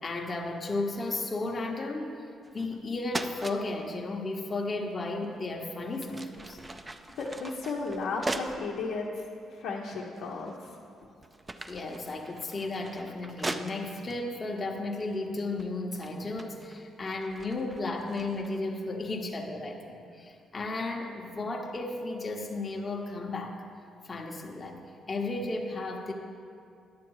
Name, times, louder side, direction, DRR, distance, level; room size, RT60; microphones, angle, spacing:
voice 1, 0.0-2.2 2.5-6.6 11.0-11.1 11.7-23.6 24.0-26.1, left 2 dB, 30° left, 0 dB, 0.9 m, -34 dB
sound 1, 2.4-2.8 3.1-3.6 5.2-5.4 5.9-8.7 9.3-9.4 10.2-10.7 11.0-14.2 15.0-15.3 15.6-18.6, right 2 dB, 20° right, 0.5 m, -40 dB
voice 2, 7.2-9.1 9.5-10.7, left 4 dB, 85° left, -4 dB, 0.8 m, -34 dB
10.5 x 7.2 x 4.7 m, 2.4 s
cardioid pair, 90°, 0 cm